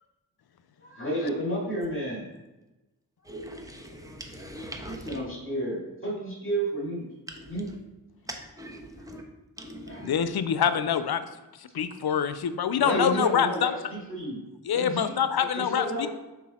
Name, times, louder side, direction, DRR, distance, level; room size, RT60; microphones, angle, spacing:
voice 1, 0.8-2.2 5.1-7.0 7.5-7.6 9.9-10.0 12.8-14.4 14.7-15.1 15.4-16.1, right 1 dB, 30° left, -4 dB, 2.3 m, -31 dB
voice 2, 3.2-5.2 7.3-7.8 8.3-9.2 9.6-10.1, right 1 dB, 10° right, 2 dB, 1.0 m, -41 dB
voice 3, 10.0-11.3 11.6-13.7 14.6-16.1, left 8 dB, 70° left, 11 dB, 0.6 m, -25 dB
6.0 x 4.5 x 4.3 m, 1.0 s
cardioid pair, 55°, 40 cm